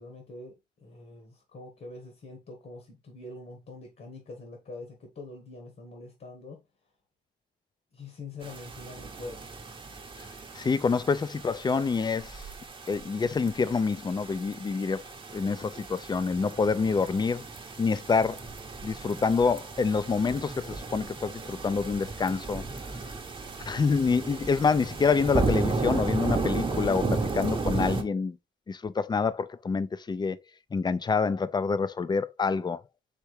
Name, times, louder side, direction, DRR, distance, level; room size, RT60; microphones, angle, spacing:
voice 1, 0.0-6.6 7.9-9.5, left 2 dB, 50° left, 1.5 m, -44 dB
sound 1, 8.4-28.0, right 3 dB, 25° right, 0.8 m, -34 dB
voice 2, 10.6-12.4 12.9-15.0 15.3-17.5 17.8-18.4 18.8-22.6 23.7-28.4 28.7-30.4 30.7-32.8, left 5 dB, 20° left, 0.4 m, -27 dB
4.4 x 3.5 x 3.2 m
cardioid pair, 90°, 20 cm